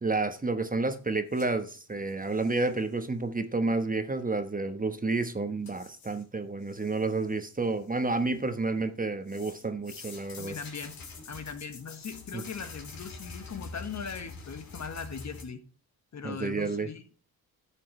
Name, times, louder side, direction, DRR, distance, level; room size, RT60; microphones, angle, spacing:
voice 1, 0.0-10.5 12.3-12.4 16.2-16.9, right 3 dB, 20° right, 8 dB, 1.2 m, -30 dB
sound 1, 1.3-2.8 5.2-5.3 5.7-6.2 6.6-7.4 7.8-8.6 9.3-15.4, left 4 dB, 60° left, 2.7 m, -46 dB
voice 2, 10.4-11.0 11.3-15.6 16.1-17.0, left 6 dB, 45° left, 9 dB, 1.4 m, -39 dB
10.5 x 7.4 x 3.3 m, 0.39 s
cardioid pair, 65°, 38 cm